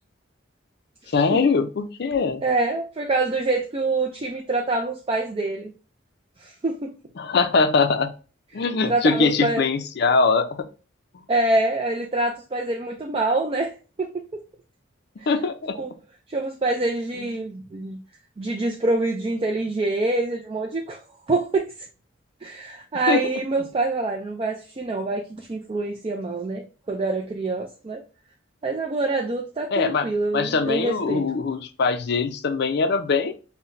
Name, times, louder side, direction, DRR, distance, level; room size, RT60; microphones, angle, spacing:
voice 1, 1.1-2.4 7.2-8.1 8.5-10.7 15.3-15.8 17.2-17.3 23.1-23.2 29.7-30.1 30.3-33.3, left 4 dB, 55° left, 0.4 m, -22 dB
voice 2, 2.4-5.7 6.4-6.9 8.9-9.6 11.3-13.7 14.0-14.4 15.2-15.3 15.8-15.9 16.3-18.0 18.4-21.0 21.3-21.9 22.4-28.0 28.6-31.2, right 2 dB, 30° right, 0.4 m, -25 dB
5.6 x 2.1 x 2.5 m
head